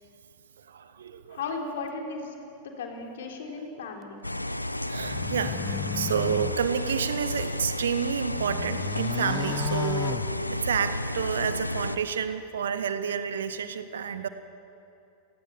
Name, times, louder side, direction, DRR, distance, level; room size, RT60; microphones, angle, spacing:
voice 1, 0.6-1.4 4.6-5.6 5.9-10.2 10.5-14.3, right 7 dB, 65° right, 11 dB, 1.3 m, -30 dB
voice 2, 1.3-2.3 2.8-4.3, left 4 dB, 60° left, 2 dB, 4.0 m, -35 dB
sound 1, 4.2-12.0, left 1 dB, 85° left, 0.7 m, -32 dB
sound 2, 5.0-7.6 8.1-10.9, left 8 dB, 25° left, 0.5 m, -35 dB
28.0 x 19.0 x 7.4 m, 2.9 s
figure-of-eight pair, 90°, 0 cm